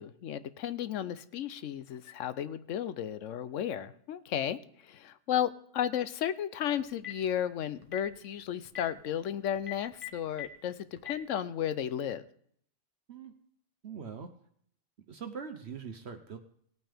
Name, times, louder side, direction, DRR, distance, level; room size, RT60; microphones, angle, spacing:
voice 1, 0.0-12.2, left 10 dB, 70° left, 14 dB, 0.9 m, -34 dB
Telephone, 6.8-7.3 7.8-8.1 8.6-8.8 9.6-10.5 11.0-11.1, left 13 dB, 25° left, 1.1 m, -39 dB
voice 2, 13.8-14.3 15.1-16.4, right 6 dB, 55° right, 6 dB, 1.0 m, -42 dB
18.0 x 9.1 x 3.5 m, 0.65 s
omnidirectional pair, 1.4 m